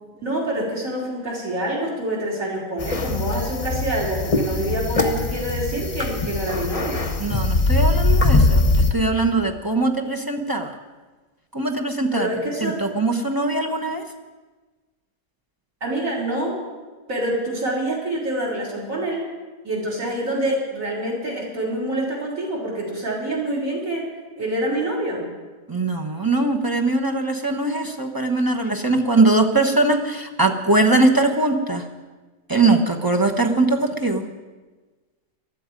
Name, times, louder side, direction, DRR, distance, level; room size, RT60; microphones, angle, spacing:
voice 1, 0.2-7.1 12.1-12.8 15.8-16.6 17.1-19.3 19.6-24.1 24.4-25.2, right 1 dB, 55° right, -2 dB, 4.9 m, -26 dB
sound 1, 2.8-8.9, left 2 dB, 25° left, 1.0 m, -21 dB
voice 2, 7.2-10.7 11.5-12.3 12.6-14.0 25.7-31.8 32.5-34.2, right 2 dB, 15° right, 2 dB, 0.9 m, -21 dB
19.0 x 13.0 x 5.2 m, 1.3 s
omnidirectional pair, 1.7 m